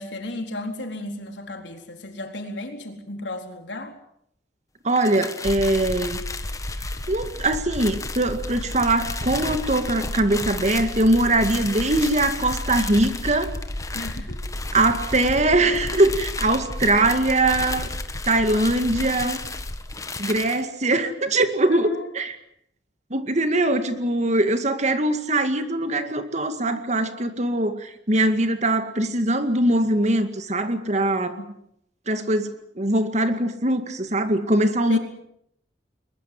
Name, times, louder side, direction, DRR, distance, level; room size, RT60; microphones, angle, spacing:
voice 1, 0.0-3.9 13.9-14.4 21.7-22.1 31.4-31.5 34.9-35.0, left 2 dB, 90° left, 4 dB, 4.1 m, -34 dB
voice 2, 4.8-6.2 7.1-13.5 14.7-17.9 18.3-19.4 20.2-22.4 23.1-31.4 32.1-35.0, right 2 dB, 40° right, 9 dB, 2.1 m, -22 dB
sound 1, 4.9-20.6, left 4 dB, 20° left, 1.5 m, -35 dB
sound 2, 5.4-19.9, left 1 dB, 45° left, 1.6 m, -34 dB
22.0 x 21.5 x 7.8 m, 0.72 s
head